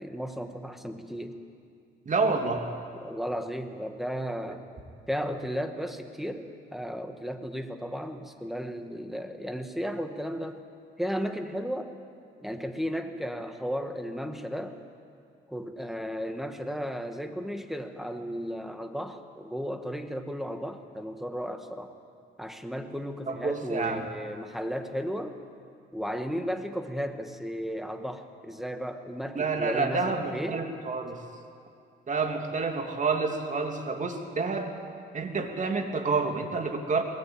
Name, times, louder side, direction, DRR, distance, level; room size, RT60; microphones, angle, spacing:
voice 1, 0.0-1.4 3.0-4.7 5.1-10.6 11.0-11.9 12.4-14.8 15.5-21.9 22.4-25.4 25.9-30.6, equal, ahead, 6 dB, 1.8 m, -34 dB
voice 2, 2.1-2.7 23.3-24.1 29.3-31.2 32.1-34.8 35.1-37.0, right 4 dB, 40° right, 4 dB, 2.7 m, -29 dB
22.0 x 18.5 x 8.9 m, 2.3 s
cardioid pair, 90°, 20 cm